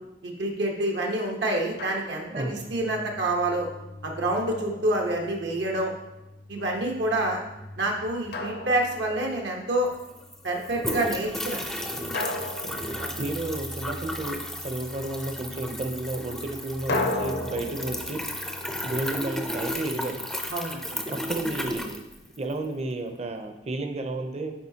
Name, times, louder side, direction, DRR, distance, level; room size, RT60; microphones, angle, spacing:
voice 1, 0.2-3.7 4.0-5.9 6.5-7.4 7.8-9.9 10.4-11.6 13.0-13.1 20.5-21.0, right 1 dB, 80° right, 0 dB, 1.1 m, -27 dB
Drum, 1.8-2.5 4.5-5.6 8.3-9.5 12.1-13.8 16.9-19.9, left 2 dB, 60° left, 0.7 m, -34 dB
sound 1, 2.2-21.4, equal, 90° left, 1.2 m, -47 dB
voice 2, 2.3-2.6 12.6-12.8 13.1-18.2 18.8-20.2 21.1-22.0 22.4-24.5, right 2 dB, 35° right, 5 dB, 0.6 m, -32 dB
sound 2, 9.9-22.7, equal, ahead, 0.4 m, -34 dB
8.6 x 4.9 x 2.8 m, 0.93 s
head